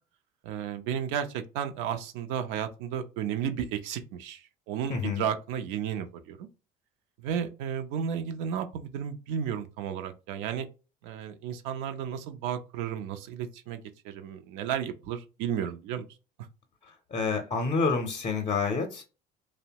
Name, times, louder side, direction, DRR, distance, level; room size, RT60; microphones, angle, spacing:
voice 1, 0.4-6.5 7.2-10.7 11.0-16.1, right 8 dB, 70° right, 0.5 m, -33 dB
voice 2, 4.9-5.2 17.1-19.0, left 4 dB, 35° left, 0.6 m, -28 dB
2.7 x 2.0 x 2.7 m
hypercardioid pair, 75°, 21 cm